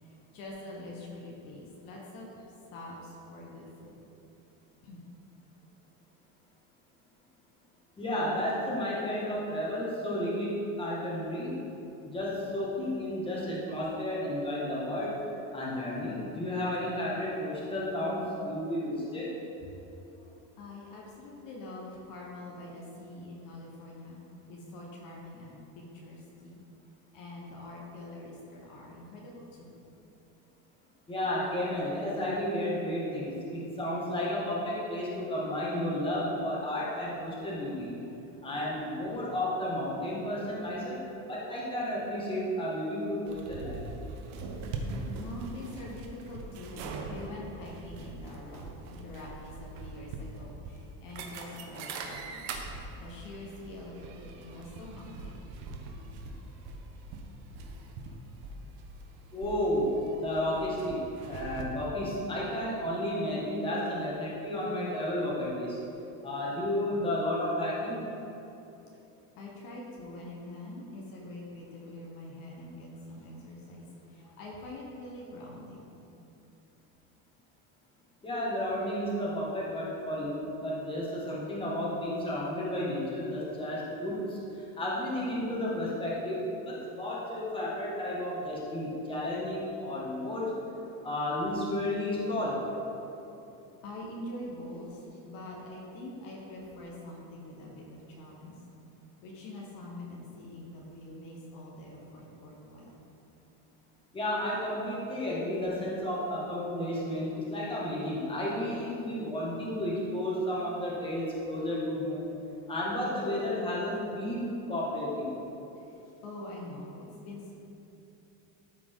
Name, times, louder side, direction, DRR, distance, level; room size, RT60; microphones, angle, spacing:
voice 1, 0.0-2.3 2.7-4.2 4.8-5.0 19.6-19.8 20.1-26.6 27.1-29.8 38.3-38.5 44.0-44.1 44.5-44.6 44.9-48.6 48.9-52.5 53.0-55.4 56.2-56.7 57.0-57.1 58.1-58.2 69.4-76.1 90.9-91.0 93.8-98.6 99.2-103.0 115.8-117.5, left 1 dB, 55° left, -2 dB, 1.5 m, -45 dB
voice 2, 8.0-11.6 12.0-15.2 15.5-19.4 31.1-37.9 38.4-41.0 41.3-43.8 59.3-65.8 66.2-68.0 78.2-90.5 91.0-92.6 104.1-112.3 112.7-115.3, left 1 dB, 15° left, -6 dB, 1.9 m, -32 dB
sound 1, 43.3-61.6, right 3 dB, 65° right, 1.1 m, -42 dB
13.0 x 4.8 x 3.9 m, 2.9 s
cardioid pair, 140°, 40 cm